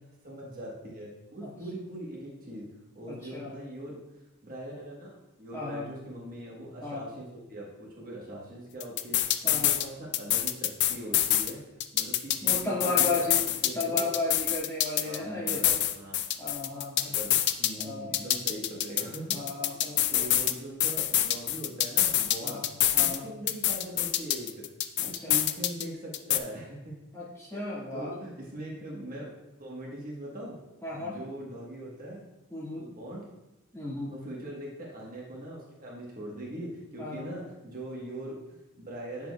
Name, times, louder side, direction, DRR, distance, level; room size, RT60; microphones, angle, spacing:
voice 1, 0.2-2.7 2.9-4.0 4.4-11.6 11.9-14.1 15.0-16.2 16.9-19.7 20.1-22.6 23.0-24.7 25.0-26.9 27.5-27.6 27.9-29.3 29.6-30.6 31.0-32.3 32.7-33.3 34.1-39.3, right 1 dB, 40° right, -4 dB, 1.3 m, -41 dB
voice 2, 3.1-3.6 5.5-5.9 6.8-7.0 9.4-9.8 12.4-13.4 13.7-15.8 16.4-17.2 17.8-18.2 19.3-20.3 22.4-23.2 25.0-25.4 27.1-28.1 30.8-31.2 32.5-32.9 33.7-34.1 37.0-37.3, left 2 dB, 15° left, -7 dB, 1.8 m, -34 dB
sound 1, 8.8-9.9 10.1-11.5 11.8-15.2 15.5-17.8 18.1-20.5 20.8-23.2 23.5-25.8 26.1-26.4, left 12 dB, 50° left, 0.4 m, -26 dB
8.6 x 6.8 x 2.3 m, 0.97 s
head